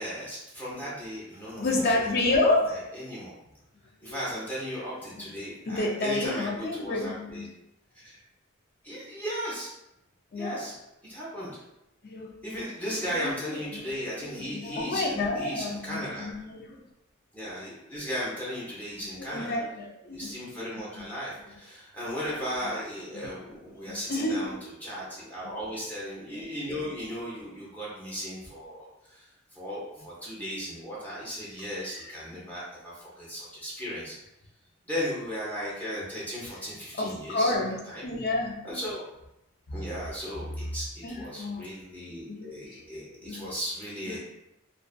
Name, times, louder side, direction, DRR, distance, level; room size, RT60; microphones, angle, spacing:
voice 1, 0.0-2.4 2.7-3.3 4.0-7.5 8.0-8.2 8.8-9.7 10.4-10.8 11.0-11.6 12.4-16.3 17.3-19.6 20.1-24.6 24.8-34.2 34.9-37.5 37.9-38.1 38.6-39.0 39.7-44.2, equal, 10° left, -8 dB, 0.7 m, -36 dB
voice 2, 1.5-2.8 4.0-4.2 5.1-5.2 5.7-7.5 10.3-10.6 12.0-12.4 12.9-16.8 19.2-20.3 21.0-21.1 23.1-23.3 23.7-24.5 25.4-25.5 37.0-38.6 39.7-39.9 41.0-41.7 42.3-43.4 44.1-44.2, left 2 dB, 50° left, 0 dB, 0.5 m, -30 dB
2.4 x 2.4 x 2.2 m, 0.88 s
head